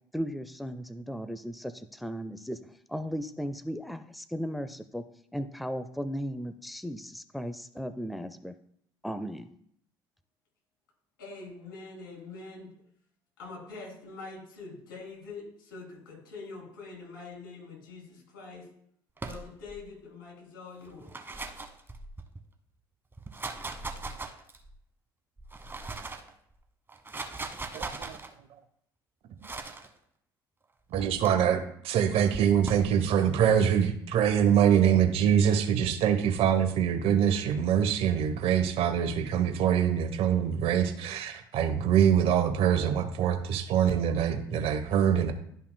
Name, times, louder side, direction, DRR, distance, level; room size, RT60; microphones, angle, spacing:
voice 1, 0.1-2.6 2.9-5.0 5.3-8.5 9.0-9.6, equal, ahead, 11 dB, 0.5 m, -36 dB
voice 2, 11.2-12.7 13.4-18.7 19.2-21.1, left 3 dB, 85° left, -2 dB, 3.2 m, -44 dB
sound 1, 19.2-19.8 20.9-22.4 23.1-24.7 25.4-26.3 26.9-28.3 29.4-29.9 30.9-31.3 32.3-32.9, right 3 dB, 20° right, 1.1 m, -39 dB
voice 3, 27.7-28.2 29.4-29.5 30.9-45.3, right 9 dB, 60° right, 8 dB, 1.0 m, -24 dB
12.0 x 5.6 x 2.2 m, 0.68 s
hypercardioid pair, 60°, 11 cm